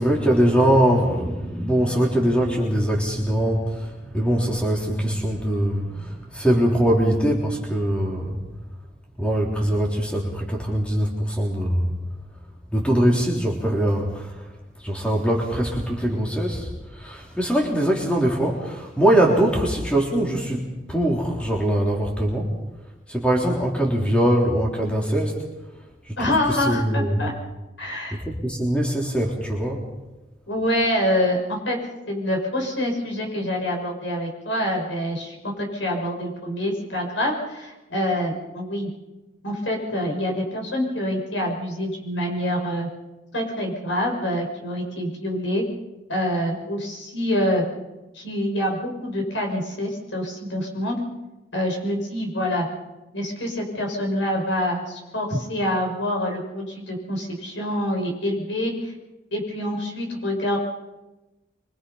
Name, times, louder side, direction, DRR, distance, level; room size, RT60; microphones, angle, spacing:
voice 1, 0.0-8.4 9.2-11.9 12.7-14.3 14.8-22.5 23.1-25.4 26.1-27.3 28.2-29.8, right 1 dB, 5° left, -1 dB, 3.8 m, -22 dB
voice 2, 26.2-27.3 27.8-28.2 30.5-31.4 31.6-31.8 32.1-38.9 39.4-42.9 43.3-45.6 46.1-47.6 48.1-51.0 51.5-52.7 53.1-58.9 59.3-60.6, left 1 dB, 80° left, 0 dB, 6.4 m, -26 dB
25.0 x 24.5 x 5.7 m, 1.1 s
head